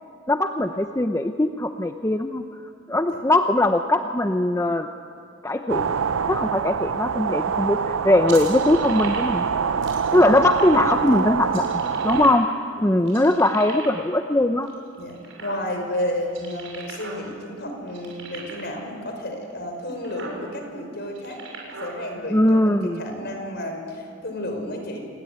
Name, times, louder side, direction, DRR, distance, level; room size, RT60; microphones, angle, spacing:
voice 1, 0.3-2.4 2.9-4.9 5.4-5.9 6.3-9.5 10.1-12.5 12.8-14.7 22.3-23.0, left 1 dB, 15° left, 6 dB, 0.8 m, -20 dB
sound 1, 5.7-12.3, right 6 dB, 90° right, 0.6 m, -25 dB
sound 2, 8.3-9.5 9.8-10.9 11.4-12.7 13.1-14.1 14.6-15.9 16.2-17.2 17.5-17.6 17.9-18.8 19.4-19.5 19.9-20.4 21.0-21.9, right 4 dB, 70° right, 6.9 m, -38 dB
voice 2, 10.0-11.2 12.8-13.2 15.0-25.1, left 1 dB, 55° left, 4 dB, 5.5 m, -32 dB
27.5 x 21.0 x 9.5 m, 2.3 s
head